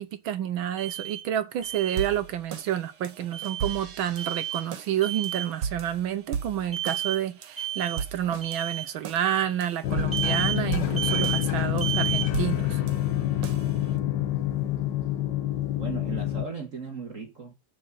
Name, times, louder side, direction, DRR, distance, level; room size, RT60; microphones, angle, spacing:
voice 1, 0.0-12.8, right 10 dB, 75° right, 1.6 m, -29 dB
Alarm, 0.8-1.2 1.6-2.1 3.3-3.8 4.2-4.7 5.0-5.5 6.7-7.2 7.6-8.0 8.4-8.8 10.1-10.6 11.0-11.4 11.8-12.3, right 11 dB, 10° right, 2.8 m, -31 dB
sound 1, 1.6-14.0, right 7 dB, 90° right, 2.2 m, -38 dB
sound 2, 9.8-16.5, left 13 dB, 65° left, 1.3 m, -27 dB
voice 2, 15.8-17.5, right 4 dB, 40° right, 1.8 m, -37 dB
7.5 x 6.2 x 7.3 m
omnidirectional pair, 2.4 m